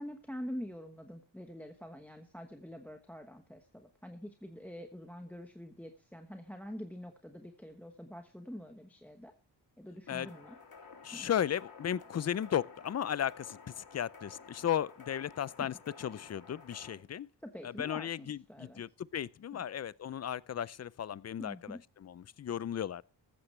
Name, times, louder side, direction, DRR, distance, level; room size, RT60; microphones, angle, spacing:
voice 1, 0.0-9.3 9.8-10.6 11.1-11.3 15.6-15.8 17.4-18.8 19.5-19.6 21.4-21.8, equal, 5° left, 1.1 m, -46 dB
sound 1, 10.1-16.9, left 5 dB, 55° left, 3.5 m, -53 dB
voice 2, 11.0-17.3 17.6-23.0, left 9 dB, 40° left, 0.5 m, -35 dB
14.5 x 13.0 x 3.2 m
wide cardioid pair, 130°, 43 cm